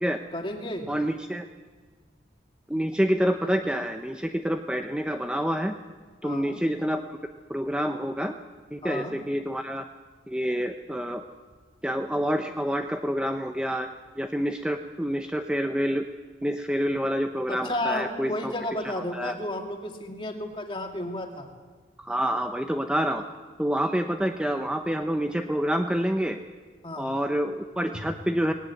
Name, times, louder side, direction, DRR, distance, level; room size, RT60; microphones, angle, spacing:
voice 1, 0.3-0.9 6.2-6.6 8.8-9.1 17.5-21.5 26.8-27.1, left 1 dB, 25° left, 3 dB, 2.3 m, -32 dB
voice 2, 0.9-1.4 2.7-5.7 6.2-7.0 7.5-8.3 8.7-9.8 10.3-11.2 11.8-13.9 14.2-16.1 16.4-18.5 18.8-19.3 22.0-23.2 23.6-26.4 27.0-28.5, equal, 5° right, 6 dB, 0.7 m, -27 dB
18.5 x 17.5 x 9.7 m, 1.4 s
head